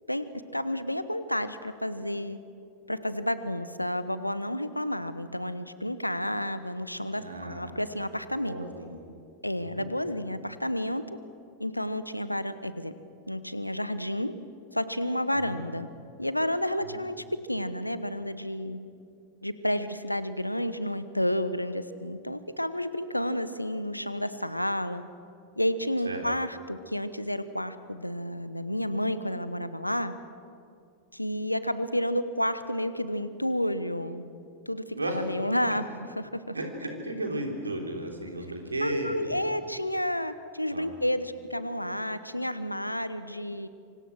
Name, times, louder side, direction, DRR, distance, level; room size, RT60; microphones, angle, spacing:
voice 1, 0.5-2.4 2.9-8.7 9.4-11.2 11.6-12.9 13.3-14.3 14.7-15.9 16.2-18.8 19.4-25.0 25.6-30.1 31.1-34.2 34.7-36.5 38.8-43.7, equal, 90° left, 13 dB, 1.1 m, -31 dB
voice 2, 7.2-7.7 8.5-9.0 9.6-9.9 15.3-15.6 16.8-17.0 26.0-26.2 34.9-35.2 36.5-39.4 40.7-40.9, right 1 dB, 80° right, 2 dB, 3.5 m, -34 dB
26.5 x 25.5 x 6.3 m, 2.5 s
figure-of-eight pair, 90°, 0 cm